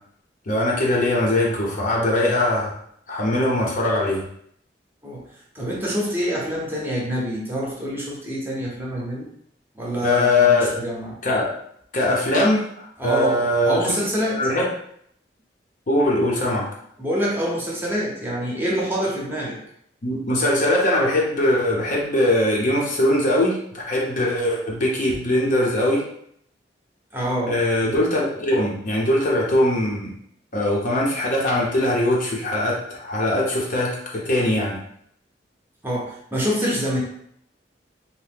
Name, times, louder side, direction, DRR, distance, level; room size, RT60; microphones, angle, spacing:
voice 1, 0.5-2.8 3.1-4.2 10.0-10.7 11.2-11.5 11.9-14.0 14.3-14.7 15.9-16.7 20.0-26.0 27.5-30.1 30.5-34.8, left 1 dB, 45° left, -2 dB, 0.6 m, -21 dB
voice 2, 5.5-9.3 9.7-11.2 13.0-14.4 17.0-19.6 27.1-27.5 35.8-37.0, equal, 10° right, -4 dB, 0.7 m, -26 dB
2.8 x 2.1 x 3.4 m, 0.69 s
head